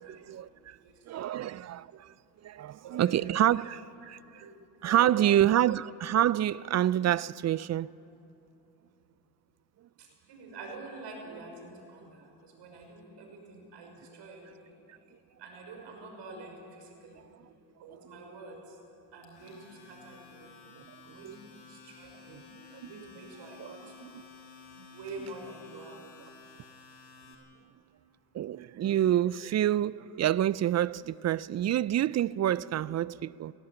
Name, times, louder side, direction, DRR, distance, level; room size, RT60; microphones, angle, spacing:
voice 1, 0.0-0.8 1.1-2.1 2.4-4.2 4.8-7.9 21.2-21.4 22.7-23.0 23.6-23.7 24.0-24.1 28.3-33.5, right 12 dB, 40° right, 0.4 m, -27 dB
voice 2, 2.8-3.2 4.4-4.5 4.8-5.3 10.0-14.7 15.4-17.3 17.8-18.8 19.1-20.7 21.0-24.0 24.9-26.0, right 3 dB, 70° right, 5.9 m, -47 dB
Domestic sounds home sounds, 19.2-27.3, left 5 dB, 75° left, 5.8 m, -53 dB
18.5 x 17.5 x 8.8 m
supercardioid pair, 85°, 44 cm